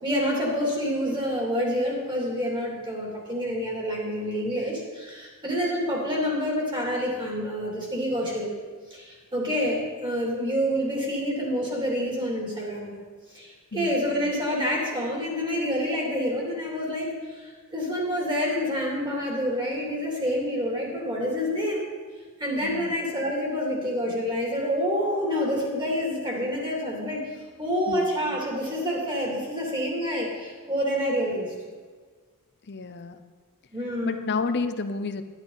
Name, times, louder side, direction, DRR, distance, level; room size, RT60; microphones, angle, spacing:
voice 1, 0.0-8.5 8.9-13.0 13.3-21.8 22.4-27.3 27.6-31.5 33.7-34.3, equal, 20° right, -3 dB, 2.7 m, -28 dB
voice 2, 22.6-23.0 27.9-28.1 32.7-33.2 34.0-35.2, left 4 dB, 50° left, 10 dB, 0.7 m, -30 dB
11.0 x 10.5 x 4.1 m, 1.5 s
head